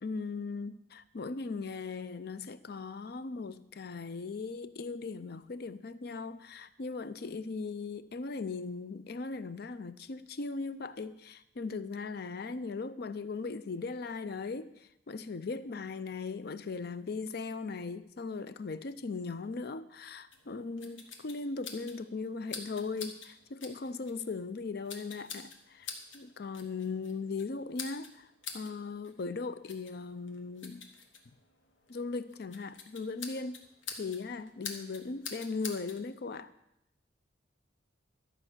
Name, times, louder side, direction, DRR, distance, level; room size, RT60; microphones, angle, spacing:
voice 1, 0.0-28.1 28.5-30.9 31.9-33.6 34.0-36.5, left 4 dB, 55° left, 0.5 m, -38 dB
sound 1, 20.3-36.0, left 5 dB, 80° left, 1.4 m, -47 dB
12.0 x 5.3 x 7.2 m
head